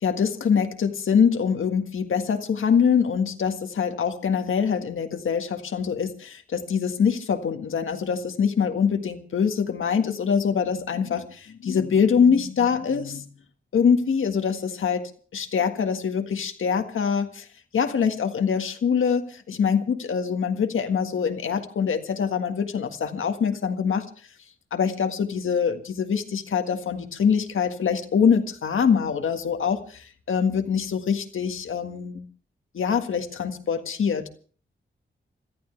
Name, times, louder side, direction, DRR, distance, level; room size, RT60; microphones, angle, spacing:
voice 1, 0.0-13.2 13.7-17.5 17.7-24.0 24.7-32.2 32.7-34.3, left 6 dB, 90° left, 6 dB, 1.7 m, -24 dB
26.5 x 14.0 x 3.3 m, 0.41 s
cardioid pair, 75°, 20 cm